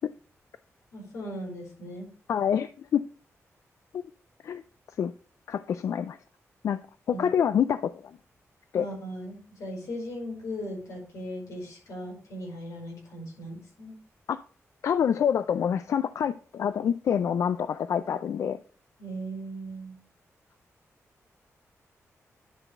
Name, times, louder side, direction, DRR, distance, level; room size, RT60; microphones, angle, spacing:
voice 1, 0.9-2.1 7.1-7.3 8.7-13.9 19.0-20.0, equal, 90° left, 0 dB, 4.8 m, -38 dB
voice 2, 2.3-3.0 3.9-4.0 4.4-4.6 5.0-5.1 5.5-6.2 6.6-6.8 7.1-8.2 8.7-8.9 14.3-14.4 14.8-18.6, left 8 dB, 65° left, 12 dB, 0.3 m, -26 dB
10.5 x 5.9 x 3.3 m, 0.40 s
wide cardioid pair, 170°, 5 cm